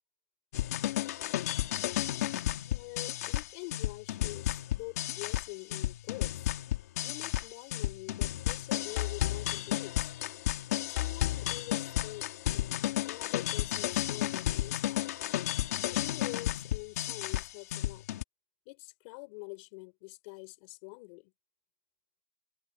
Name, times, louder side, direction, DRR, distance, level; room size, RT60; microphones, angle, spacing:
sound 1, 0.5-18.2, left 13 dB, 85° left, 1.8 m, -32 dB
voice 1, 2.7-6.5 7.0-10.1 10.8-12.3 12.5-15.0 15.9-18.0 18.6-21.3, left 31 dB, 60° left, 5.0 m, -45 dB
open air
supercardioid pair, 130°, 8 cm